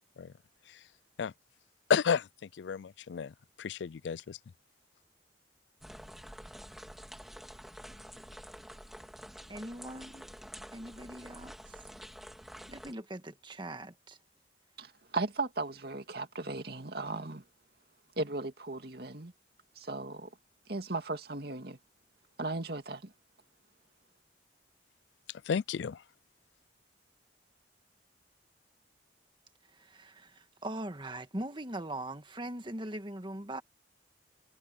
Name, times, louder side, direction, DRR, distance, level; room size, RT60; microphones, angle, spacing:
voice 1, 1.9-2.3 2.6-3.3 3.6-4.4 25.5-26.0, left 6 dB, 80° left, 0.4 m, -31 dB
sound 1, 5.8-12.9, equal, ahead, 2.2 m, -48 dB
voice 2, 9.5-10.3 10.7-11.8 12.7-14.2 29.7-33.6, right 1 dB, 25° right, 1.7 m, -41 dB
voice 3, 14.8-17.4 18.2-19.3 19.8-20.3 20.7-21.8 22.4-23.1, right 3 dB, 60° right, 2.4 m, -36 dB
head